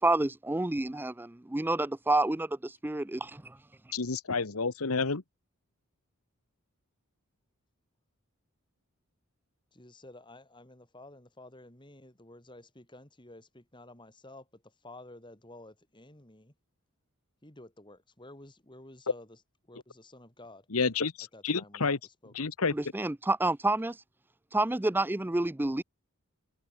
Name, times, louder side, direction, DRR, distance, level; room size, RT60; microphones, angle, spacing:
voice 1, 0.0-3.6 22.7-24.0 24.5-25.8, right 2 dB, 10° right, 0.4 m, -29 dB
voice 2, 3.9-5.2 20.7-22.0 22.3-22.7, left 4 dB, 75° left, 1.2 m, -29 dB
voice 3, 9.7-16.5 17.4-19.4 19.7-20.7 21.3-22.3, left 2 dB, 20° left, 2.9 m, -52 dB
head